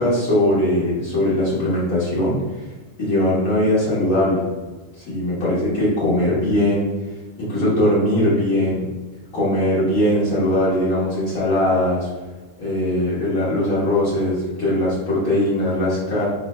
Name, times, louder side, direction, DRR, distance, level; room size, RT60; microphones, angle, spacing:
voice 1, 0.0-2.6 3.0-4.4 5.0-6.9 7.4-8.9 9.3-12.1 12.6-16.3, left 1 dB, 70° left, -10 dB, 1.7 m, -20 dB
4.8 x 3.3 x 3.1 m, 1.2 s
omnidirectional pair, 1.5 m